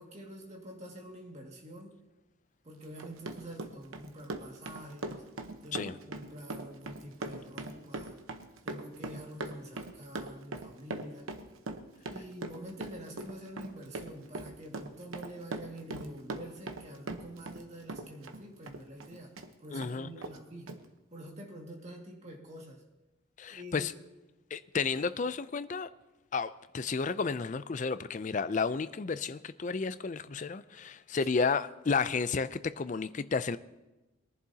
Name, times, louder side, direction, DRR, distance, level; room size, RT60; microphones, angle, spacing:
voice 1, 0.0-1.9 2.6-5.2 5.6-8.2 8.6-11.3 12.1-20.8 21.1-22.8 23.5-23.9, right 1 dB, 35° right, 0 dB, 2.0 m, -47 dB
Run, 2.8-17.6 17.9-19.5 19.8-19.9 20.2-20.4 20.7-20.8, right 2 dB, 90° right, 1.0 m, -40 dB
voice 2, 19.7-20.1 23.4-23.9 24.5-25.9 26.3-33.6, left 5 dB, 40° left, 14 dB, 0.4 m, -32 dB
22.0 x 11.0 x 2.8 m, 1.1 s
head